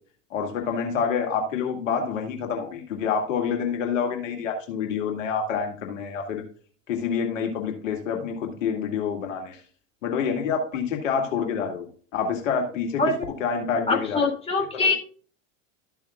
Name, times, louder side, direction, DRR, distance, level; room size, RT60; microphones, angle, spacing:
voice 1, 0.3-6.4 6.9-9.6 10.0-11.9 12.1-13.0 13.4-14.3 14.7-14.9, left 6 dB, 75° left, 3 dB, 2.2 m, -27 dB
voice 2, 13.9-14.9, left 3 dB, 15° left, 1 dB, 3.2 m, -23 dB
13.0 x 7.0 x 2.3 m, 0.43 s
hypercardioid pair, 95°, 39 cm